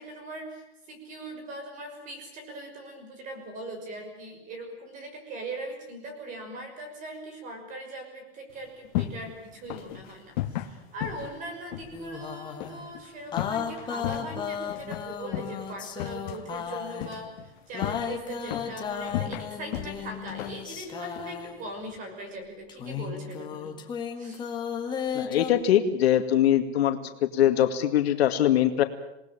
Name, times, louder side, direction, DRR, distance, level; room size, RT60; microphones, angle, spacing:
voice 1, 0.0-23.7 24.2-24.4, right 1 dB, 25° right, 5 dB, 6.1 m, -40 dB
sound 1, 8.5-22.0, left 13 dB, 45° left, 1.6 m, -37 dB
sound 2, 11.9-12.8 13.3-17.2 17.7-21.7 22.7-25.5, left 7 dB, 15° left, 1.9 m, -35 dB
voice 2, 25.1-28.8, left 11 dB, 70° left, 7 dB, 2.3 m, -22 dB
28.0 x 19.5 x 9.0 m, 0.89 s
supercardioid pair, 170°, 33 cm